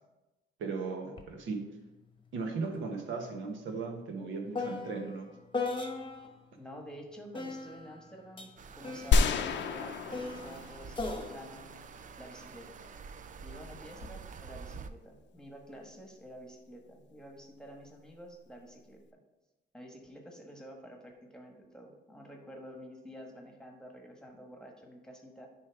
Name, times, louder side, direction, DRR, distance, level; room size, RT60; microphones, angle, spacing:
voice 1, 0.6-1.6 2.3-5.3, right 4 dB, 75° right, 3 dB, 1.2 m, -37 dB
sound 1, 1.2-1.3 1.7-6.4 7.3-12.9 13.7-14.2, left 3 dB, 25° left, 1.0 m, -40 dB
voice 2, 6.6-11.7 12.2-12.8 13.4-19.2 19.7-25.5, equal, 5° left, 1 dB, 1.4 m, -50 dB
sound 2, 8.6-14.9, right 5 dB, 40° right, 0.5 m, -47 dB
sound 3, 9.1-11.4, left 4 dB, 65° left, 0.6 m, -29 dB
9.7 x 3.3 x 4.7 m, 1.1 s
cardioid pair, 90°, 20 cm